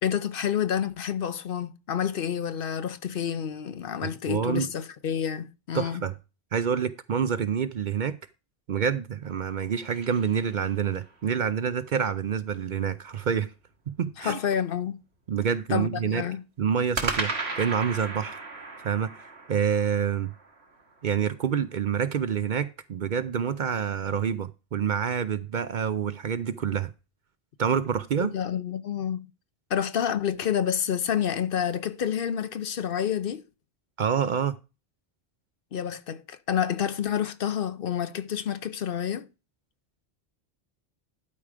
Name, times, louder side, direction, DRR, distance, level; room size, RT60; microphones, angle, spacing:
voice 1, 0.0-6.0 14.2-15.0 15.7-16.4 28.2-29.3 29.7-33.4 35.7-39.3, left 8 dB, 60° left, 0.8 m, -29 dB
voice 2, 4.0-4.7 5.7-6.1 6.5-8.2 8.7-13.5 13.9-14.4 15.3-16.2 16.6-18.4 18.8-20.3 21.0-26.9 27.6-28.3 34.0-34.6, right 7 dB, 55° right, 0.6 m, -27 dB
sound 1, 9.2-11.1 16.9-21.2, right 3 dB, 75° right, 1.9 m, -35 dB
12.0 x 4.7 x 4.9 m
omnidirectional pair, 1.1 m